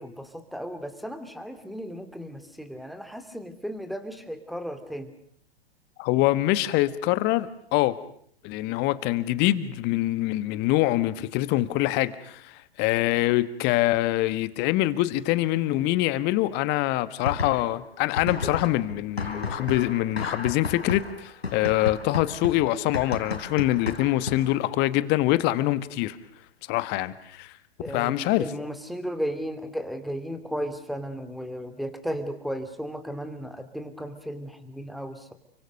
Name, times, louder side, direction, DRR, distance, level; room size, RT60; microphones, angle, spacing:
voice 1, 0.0-5.1 27.8-35.3, equal, ahead, 2.8 m, -35 dB
voice 2, 6.0-8.0 8.4-26.2 26.7-27.5 27.9-28.4, left 16 dB, 35° left, 1.7 m, -24 dB
sound 1, 17.2-17.8 18.2-24.6, left 3 dB, 80° left, 3.9 m, -33 dB
30.0 x 24.5 x 6.7 m
figure-of-eight pair, 105°, 31 cm